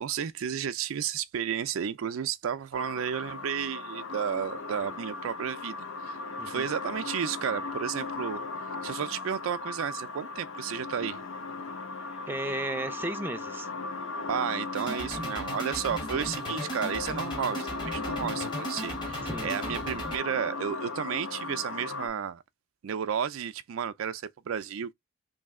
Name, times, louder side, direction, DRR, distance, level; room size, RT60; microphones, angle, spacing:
voice 1, 0.0-5.8 6.0-6.2 6.5-8.4 8.8-11.2 14.3-22.4 22.8-24.9, right 8 dB, 75° right, 0.4 m, -32 dB
sound 1, 2.7-22.1, left 3 dB, 70° left, 0.7 m, -37 dB
voice 2, 6.4-6.7 12.3-13.7 16.1-16.3 19.2-19.5, right 1 dB, 10° right, 0.5 m, -35 dB
sound 2, 14.8-20.2, equal, 20° left, 1.2 m, -37 dB
3.2 x 2.7 x 3.6 m
head